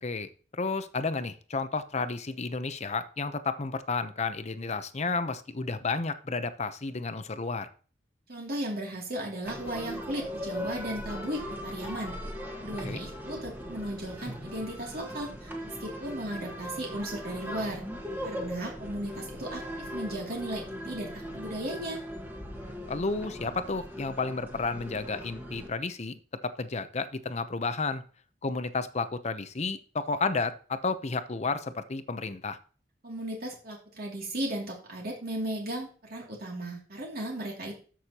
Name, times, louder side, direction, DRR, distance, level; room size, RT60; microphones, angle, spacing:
voice 1, 0.0-7.7 12.8-13.0 22.9-26.1 26.4-28.0 28.4-32.6, left 4 dB, 40° left, 11 dB, 0.7 m, -32 dB
voice 2, 8.3-12.1 12.6-17.8 18.2-22.0 33.0-37.7, right 1 dB, 55° right, -1 dB, 2.6 m, -36 dB
sound 1, 9.4-25.7, equal, 10° right, 1.5 m, -39 dB
13.0 x 6.4 x 2.9 m, 0.40 s
head